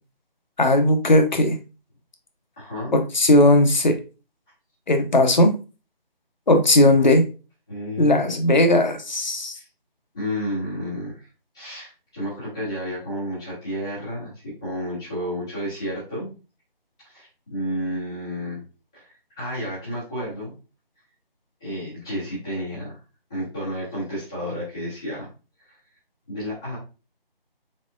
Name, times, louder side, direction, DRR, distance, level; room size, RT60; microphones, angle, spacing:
voice 1, 0.6-1.6 2.9-4.0 4.9-5.6 6.5-7.2 8.0-9.5, left 1 dB, 50° left, 5 dB, 0.9 m, -17 dB
voice 2, 2.6-3.0 7.0-7.1 7.7-8.3 9.5-9.7 10.1-11.3 11.5-16.3 17.0-18.6 18.9-19.1 19.4-20.5 21.6-23.0 23.3-25.3 25.6-25.8 26.3-26.8, equal, 5° left, -13 dB, 0.9 m, -31 dB
4.2 x 4.2 x 2.4 m, 0.31 s
figure-of-eight pair, 165°, 30 cm